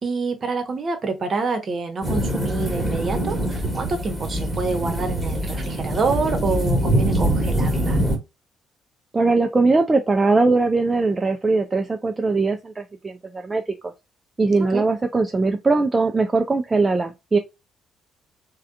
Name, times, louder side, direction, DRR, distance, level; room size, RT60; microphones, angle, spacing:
voice 1, 0.0-8.0 14.7-14.8, right 4 dB, 45° right, 0.9 m, -27 dB
sound 1, 2.0-8.2, right 1 dB, 10° right, 1.3 m, -23 dB
voice 2, 9.1-13.6 14.4-17.4, right 3 dB, 25° right, 0.4 m, -20 dB
3.4 x 2.2 x 2.4 m
hypercardioid pair, 45°, 0 cm